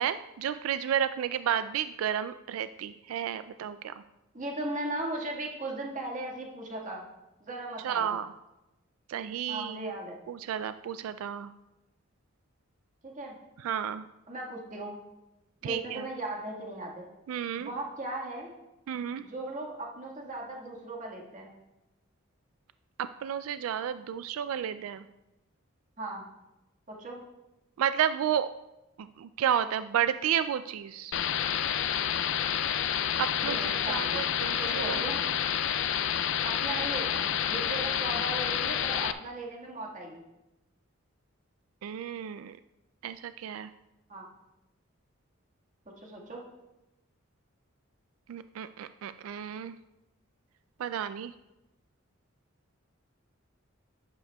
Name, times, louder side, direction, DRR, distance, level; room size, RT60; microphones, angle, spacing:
voice 1, 0.0-3.9 7.8-8.3 9.1-9.9 10.3-11.5 13.6-14.1 15.6-16.0 17.3-17.7 18.9-19.2 23.2-25.1 27.8-28.5 29.0-31.1 33.2-35.1 41.8-42.6 43.0-43.7 48.3-49.8 50.8-51.3, right 9 dB, 90° right, 12 dB, 0.3 m, -32 dB
voice 2, 4.3-7.0 7.4-8.1 9.5-10.2 13.0-13.3 14.3-15.0 15.6-17.1 17.6-18.5 19.2-21.6 26.0-26.2 26.9-27.3 33.4-34.2 34.6-35.2 36.4-40.2 44.1-44.3 46.0-46.5, right 2 dB, 35° right, -1 dB, 1.7 m, -37 dB
sound 1, 31.1-39.1, left 9 dB, 60° left, 0.4 m, -29 dB
11.5 x 9.1 x 2.3 m, 0.99 s
head